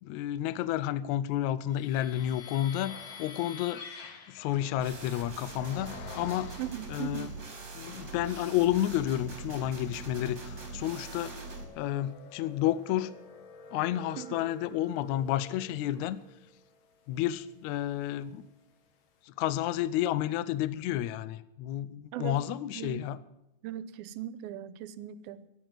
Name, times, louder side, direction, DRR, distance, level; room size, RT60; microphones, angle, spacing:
voice 1, 0.0-3.8 4.3-6.5 6.9-7.3 7.8-11.3 11.8-13.1 13.7-16.2 17.1-18.4 19.3-23.2, left 12 dB, 85° left, 16 dB, 1.6 m, -31 dB
sound 1, 1.7-7.2 7.8-8.6 9.0-18.2, left 5 dB, 60° left, 2.5 m, -50 dB
sound 2, 4.8-11.6, right 3 dB, 30° right, 3.6 m, -42 dB
voice 2, 6.6-7.4 14.2-14.4 22.1-22.4 22.7-23.1 23.6-25.5, right 11 dB, 90° right, 14 dB, 2.6 m, -39 dB
13.5 x 11.0 x 9.3 m, 0.90 s
omnidirectional pair, 4.2 m